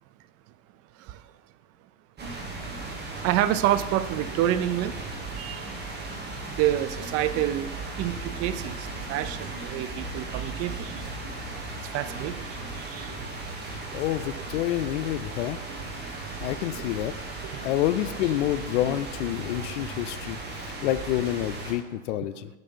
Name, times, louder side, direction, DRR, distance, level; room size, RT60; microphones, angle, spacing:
sound 1, 2.2-21.7, right 2 dB, 30° right, 1.7 m, -36 dB
voice 1, 3.2-5.0 5.4-5.7 6.6-7.7 8.0-11.0 11.9-13.3 17.5-17.6, right 12 dB, 45° right, 13 dB, 0.4 m, -28 dB
voice 2, 13.9-15.6 15.9-16.1 16.4-17.1 17.6-22.5, left 13 dB, 80° left, 14 dB, 0.6 m, -28 dB
5.9 x 5.3 x 5.6 m, 1.2 s
supercardioid pair, 105°, 36 cm